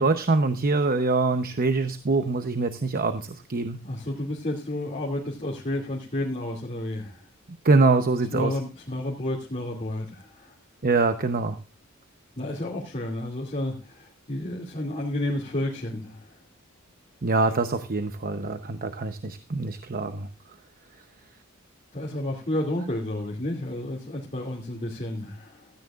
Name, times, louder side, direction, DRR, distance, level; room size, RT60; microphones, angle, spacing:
voice 1, 0.0-3.8 7.6-8.5 10.8-11.6 17.2-20.3, right 3 dB, 45° right, 8 dB, 0.8 m, -24 dB
voice 2, 3.8-7.2 8.3-10.5 12.4-16.4 21.9-25.7, left 1 dB, 35° left, -3 dB, 2.5 m, -31 dB
16.0 x 14.5 x 2.4 m, 0.32 s
head